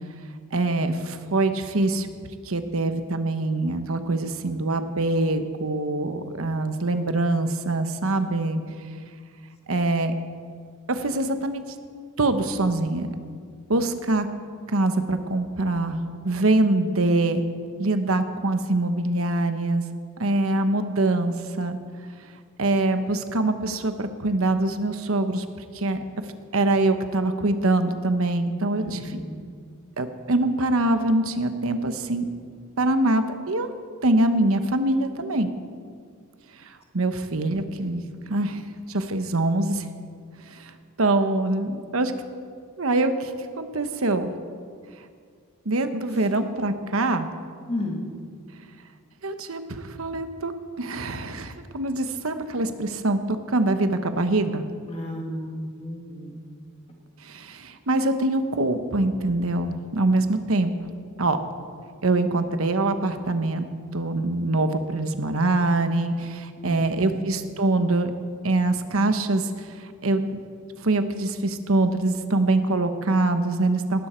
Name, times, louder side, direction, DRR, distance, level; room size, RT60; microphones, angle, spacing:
voice 1, 0.5-2.1 2.4-8.6 9.7-10.1 10.9-11.6 12.2-13.1 13.7-14.3 14.7-16.0 16.2-17.4 17.8-19.8 20.2-21.8 22.6-25.5 25.7-26.0 26.5-29.2 30.0-32.3 32.8-33.7 34.0-35.5 36.7-38.0 38.3-38.6 38.9-39.9 40.5-40.7 41.0-42.1 42.8-43.3 43.6-44.3 45.6-47.3 49.2-50.5 50.8-54.6 57.2-60.7 61.2-61.4 62.0-63.6 63.9-68.1 68.4-70.4 70.8-74.1, right 2 dB, 70° right, 9 dB, 1.0 m, -24 dB
voice 2, 28.8-29.4 47.7-48.1 54.9-56.4 66.6-66.8, left 1 dB, 30° left, 0 dB, 2.2 m, -32 dB
19.0 x 12.0 x 4.5 m, 2.1 s
head